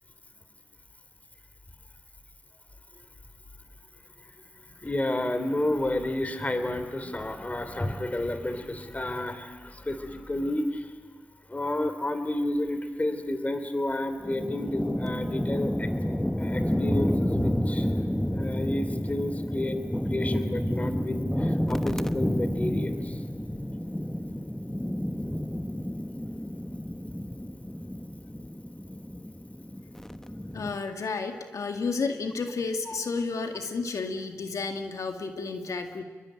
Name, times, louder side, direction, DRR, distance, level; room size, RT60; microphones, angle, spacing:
voice 1, 4.8-10.9 11.5-15.9 16.4-17.9 18.3-19.8 20.1-23.2 32.9-33.0, left 1 dB, 25° left, 9 dB, 3.1 m, -31 dB
sound 1, 14.2-30.8, equal, 10° left, 1.2 m, -30 dB
voice 2, 30.5-36.0, left 4 dB, 85° left, 5 dB, 2.0 m, -31 dB
29.5 x 22.0 x 9.2 m, 1.4 s
cardioid pair, 70°, 5 cm